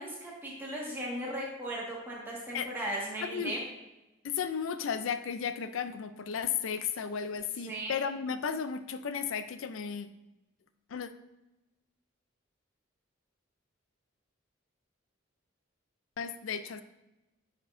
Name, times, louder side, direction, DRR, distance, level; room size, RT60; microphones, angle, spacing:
voice 1, 0.0-3.6 7.6-8.0, right 1 dB, 10° right, -5 dB, 1.6 m, -37 dB
voice 2, 3.2-3.5 4.2-10.1 10.9-11.1 16.2-16.8, left 7 dB, 70° left, 10 dB, 0.4 m, -34 dB
9.2 x 4.4 x 2.6 m, 0.99 s
head